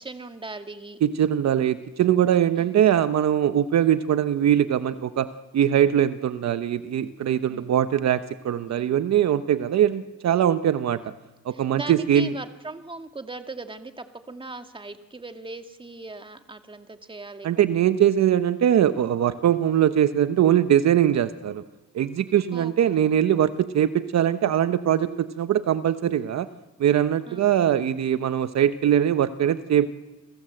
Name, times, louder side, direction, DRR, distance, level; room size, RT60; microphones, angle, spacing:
voice 1, 0.0-1.0 2.6-2.8 7.5-7.8 8.6-9.0 9.9-10.0 11.0-11.1 11.5-17.5 22.5-23.0 27.3-27.5, right 3 dB, 15° right, 7 dB, 2.0 m, -39 dB
voice 2, 1.0-5.3 5.5-11.0 11.4-12.3 17.4-21.6 21.9-26.5 26.8-29.9, right 10 dB, 60° right, 11 dB, 1.0 m, -21 dB
29.5 x 22.0 x 7.8 m, 1.2 s
cardioid pair, 90°, 30 cm